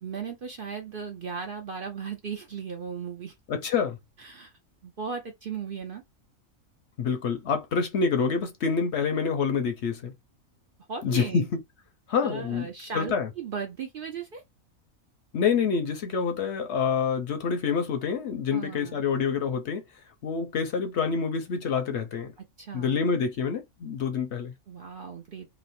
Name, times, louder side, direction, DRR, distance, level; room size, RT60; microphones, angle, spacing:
voice 1, 0.0-3.3 4.2-4.5 4.8-6.0 10.9-11.5 12.2-14.4 18.5-19.0 22.4-23.0 24.7-25.5, right 6 dB, 55° right, 0.6 m, -36 dB
voice 2, 3.5-4.0 7.0-10.1 11.0-11.6 12.1-12.7 12.9-13.3 15.3-19.8 20.2-22.3 22.7-24.5, left 6 dB, 65° left, 0.8 m, -27 dB
3.0 x 2.0 x 4.1 m
omnidirectional pair, 1.4 m